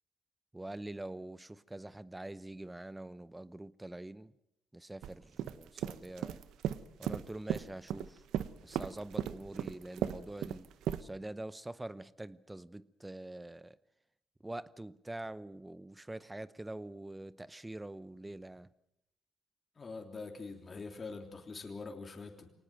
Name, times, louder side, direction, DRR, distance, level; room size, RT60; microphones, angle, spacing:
voice 1, 0.5-4.3 4.7-6.4 7.0-8.2 8.6-10.7 11.0-13.8 14.4-18.7, right 1 dB, 10° right, 0.8 m, -45 dB
sound 1, 5.0-5.1 5.4-8.1 8.3-11.0, right 10 dB, 80° right, 0.9 m, -35 dB
voice 2, 19.8-22.5, left 4 dB, 35° left, 3.3 m, -44 dB
24.0 x 19.5 x 7.8 m
cardioid pair, 90°, 0 cm